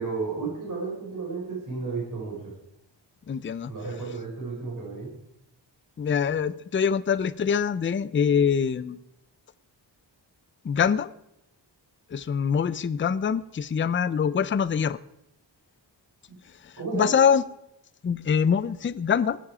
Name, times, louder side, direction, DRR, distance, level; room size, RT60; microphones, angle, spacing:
voice 1, 0.0-2.4 3.7-5.1 16.3-16.4 16.8-17.1, right 4 dB, 45° right, -4 dB, 5.0 m, -32 dB
voice 2, 3.3-3.7 6.0-9.0 10.6-11.1 12.1-15.0 16.6-17.4 18.0-19.4, left 7 dB, 30° left, 16 dB, 0.4 m, -24 dB
18.5 x 7.7 x 4.9 m, 0.81 s
wide cardioid pair, 125°, 44 cm